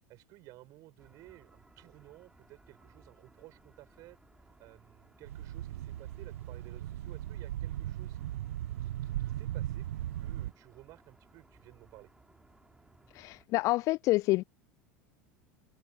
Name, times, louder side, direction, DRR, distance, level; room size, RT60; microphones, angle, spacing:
voice 1, 0.1-8.4 8.8-12.1, right 19 dB, 50° right, 7.1 m, -55 dB
sound 1, 1.0-13.4, right 2 dB, 10° right, 4.8 m, -62 dB
sound 2, 5.2-10.5, right 13 dB, 70° right, 1.3 m, -37 dB
voice 2, 13.2-14.4, left 19 dB, 45° left, 0.3 m, -28 dB
figure-of-eight pair, 80°, 8 cm